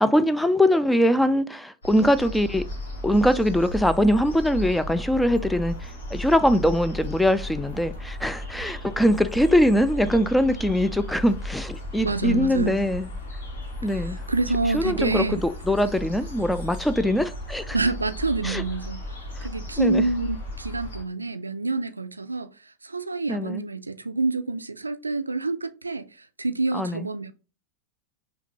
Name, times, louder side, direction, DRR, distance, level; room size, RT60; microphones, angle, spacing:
voice 1, 0.0-2.6 3.0-13.1 13.8-14.2 14.7-17.8 18.4-18.6 19.4-19.5 19.8-20.0 23.3-23.6 26.7-27.1, equal, 5° left, 0.3 m, -22 dB
sound 1, 1.8-21.0, left 1 dB, 60° left, 1.3 m, -35 dB
voice 2, 12.0-12.9 13.9-15.4 17.7-19.0 19.4-27.3, right 3 dB, 80° right, 0.3 m, -27 dB
5.6 x 2.2 x 2.9 m
figure-of-eight pair, 90°, 0 cm